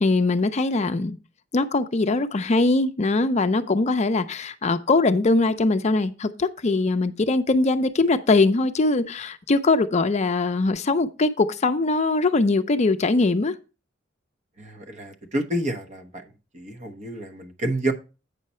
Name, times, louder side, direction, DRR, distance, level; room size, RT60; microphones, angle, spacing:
voice 1, 0.0-1.2 1.5-13.5, left 3 dB, 35° left, 0.5 m, -21 dB
voice 2, 14.6-16.2 16.5-17.9, right 1 dB, 40° right, 1.0 m, -29 dB
8.3 x 5.7 x 4.2 m
head